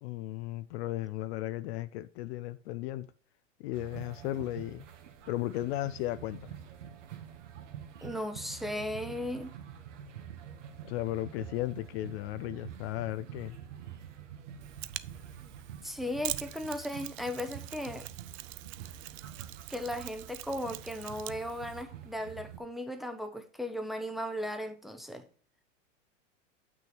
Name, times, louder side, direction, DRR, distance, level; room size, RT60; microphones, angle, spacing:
voice 1, 0.0-3.1 3.6-4.9 5.3-6.6 10.9-13.6, left 15 dB, 55° left, 0.6 m, -35 dB
sound 1, 3.7-22.6, right 9 dB, 70° right, 1.8 m, -47 dB
voice 2, 8.0-9.5 15.8-18.1 19.7-25.3, left 1 dB, ahead, 0.9 m, -36 dB
Mechanisms, 14.6-21.8, right 17 dB, 35° right, 0.4 m, -44 dB
7.7 x 6.2 x 4.5 m
hypercardioid pair, 100°, 38 cm